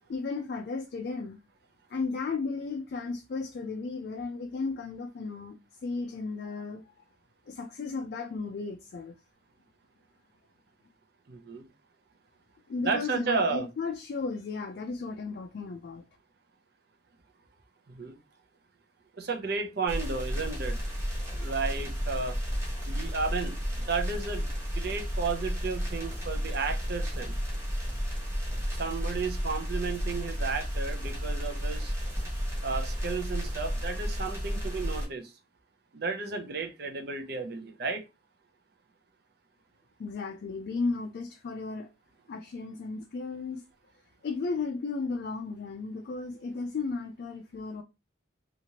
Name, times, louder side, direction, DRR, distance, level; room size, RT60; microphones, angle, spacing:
voice 1, 0.1-1.4 1.9-5.6 5.8-6.8 7.5-9.2 12.7-16.0 40.0-41.9 42.3-43.6 44.2-47.8, left 4 dB, 55° left, 0.3 m, -34 dB
voice 2, 11.3-11.7 12.8-13.7 17.9-18.2 19.2-20.8 21.4-22.4 22.9-24.5 24.7-27.4 28.7-31.9 32.6-35.3 35.9-38.0, right 4 dB, 55° right, 0.6 m, -33 dB
sound 1, 19.9-35.1, equal, 15° right, 1.1 m, -32 dB
2.8 x 2.5 x 2.8 m
head